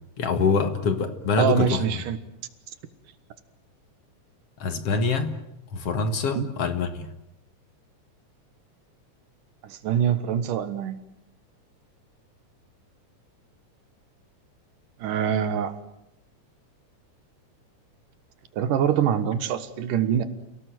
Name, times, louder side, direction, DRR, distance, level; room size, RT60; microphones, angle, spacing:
voice 1, 0.2-1.8 4.6-5.4 5.7-7.1, left 4 dB, 50° left, 9 dB, 2.3 m, -25 dB
voice 2, 1.4-2.2 6.4-6.5 9.6-11.0 15.0-15.8 18.5-20.2, right 9 dB, 75° right, 11 dB, 3.0 m, -24 dB
29.0 x 17.5 x 9.2 m, 0.86 s
omnidirectional pair, 3.8 m